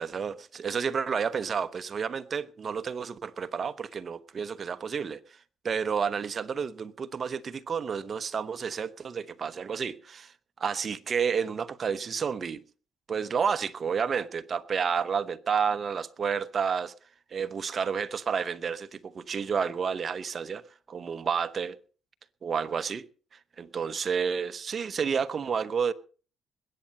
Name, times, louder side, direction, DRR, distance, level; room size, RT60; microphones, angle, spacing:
voice 1, 0.0-5.4 5.6-10.3 10.6-12.6 13.1-16.9 17.3-20.6 20.9-21.7 22.4-23.0 23.6-25.9, right 6 dB, 45° right, 1.0 m, -30 dB
21.0 x 8.7 x 5.4 m
cardioid pair, 90°, 0 cm